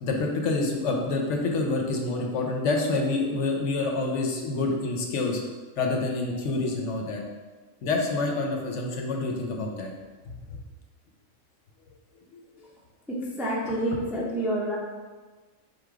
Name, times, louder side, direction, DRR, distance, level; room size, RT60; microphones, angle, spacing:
voice 1, 0.0-5.4 5.8-7.2 7.8-9.9 10.3-10.6 12.3-12.4, left 3 dB, 70° left, 1 dB, 0.9 m, -27 dB
voice 2, 13.1-14.8, right 1 dB, 5° right, -4 dB, 0.3 m, -28 dB
3.8 x 2.9 x 4.7 m, 1.4 s
omnidirectional pair, 1.4 m